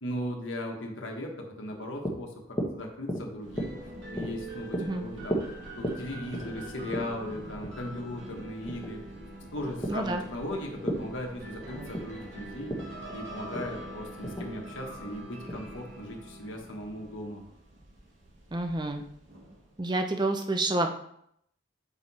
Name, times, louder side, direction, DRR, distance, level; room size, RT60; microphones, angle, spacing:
voice 1, 0.0-3.7 4.1-9.0 9.5-12.7 13.1-17.4, left 1 dB, 80° left, 1 dB, 1.4 m, -38 dB
sound 1, 1.7-16.2, equal, 20° left, 1.1 m, -38 dB
sound 2, 3.4-19.9, right 1 dB, 70° right, 1.8 m, -44 dB
voice 2, 9.9-10.2 18.5-19.0 19.8-21.0, right 2 dB, 20° right, 5 dB, 0.6 m, -28 dB
7.8 x 4.7 x 4.2 m, 0.73 s
head